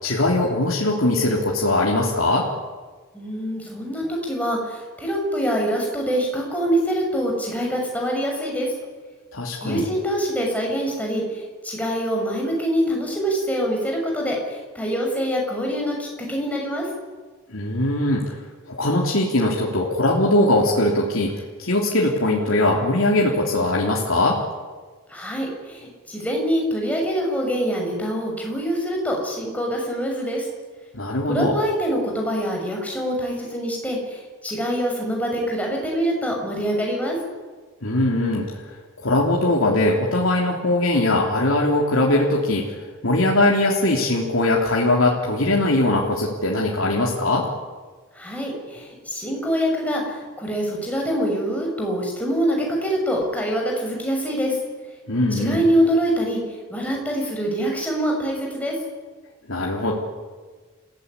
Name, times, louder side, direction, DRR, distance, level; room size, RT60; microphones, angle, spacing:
voice 1, 0.0-2.5 9.3-9.8 17.5-18.2 18.7-24.4 30.9-31.5 37.8-38.8 39.0-47.5 55.1-55.6 59.5-59.9, left 1 dB, 70° left, -3 dB, 3.5 m, -21 dB
voice 2, 3.1-8.7 9.6-16.9 25.1-30.5 31.2-37.2 48.1-54.6 55.3-56.4 56.7-58.7, equal, 5° left, 0 dB, 6.8 m, -25 dB
28.5 x 17.0 x 9.8 m, 1.4 s
head